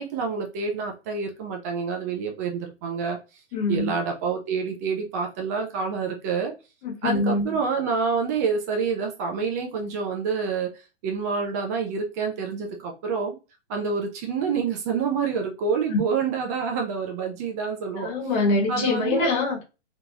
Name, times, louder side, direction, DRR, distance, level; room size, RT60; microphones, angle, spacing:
voice 1, 0.0-3.2 3.7-6.5 7.0-13.4 13.7-18.1 18.7-19.3, right 5 dB, 15° right, 0.3 m, -27 dB
voice 2, 3.5-3.9 6.8-7.6 15.9-16.0 18.0-19.6, left 3 dB, 40° left, 1.4 m, -24 dB
3.6 x 3.0 x 2.4 m
hypercardioid pair, 130°, 35 cm